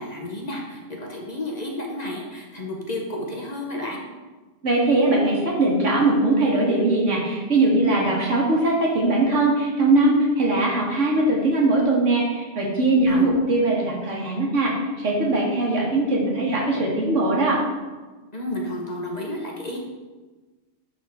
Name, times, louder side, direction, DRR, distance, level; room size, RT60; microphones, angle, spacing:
voice 1, 0.0-4.0 13.1-13.4 18.3-19.8, left 1 dB, 40° left, -1 dB, 0.9 m, -31 dB
voice 2, 4.6-14.7 15.0-17.6, right 2 dB, 80° right, -2 dB, 1.9 m, -20 dB
10.5 x 4.0 x 3.6 m, 1.3 s
omnidirectional pair, 1.2 m